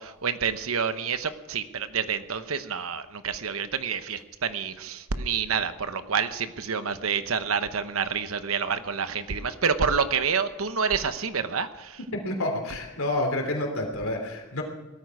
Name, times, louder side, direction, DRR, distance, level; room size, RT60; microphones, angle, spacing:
voice 1, 0.0-12.0, right 6 dB, 90° right, 11 dB, 1.0 m, -28 dB
voice 2, 12.1-14.6, left 1 dB, 90° left, 2 dB, 3.2 m, -29 dB
17.5 x 13.5 x 4.8 m, 1.2 s
head